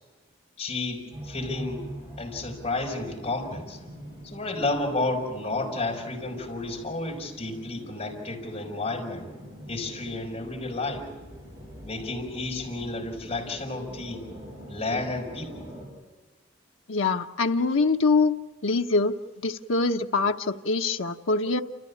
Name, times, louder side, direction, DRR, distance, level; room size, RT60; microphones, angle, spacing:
voice 1, 0.6-1.9 2.2-3.8 4.2-9.3 9.7-11.1 11.8-14.3 14.7-15.7, left 2 dB, 30° left, 0 dB, 5.4 m, -31 dB
sound 1, 1.1-15.9, equal, 25° right, 7.8 m, -44 dB
voice 2, 16.9-18.3 18.6-19.2 19.4-21.6, left 3 dB, 90° left, 5 dB, 0.9 m, -24 dB
29.0 x 15.0 x 8.5 m, 1.4 s
head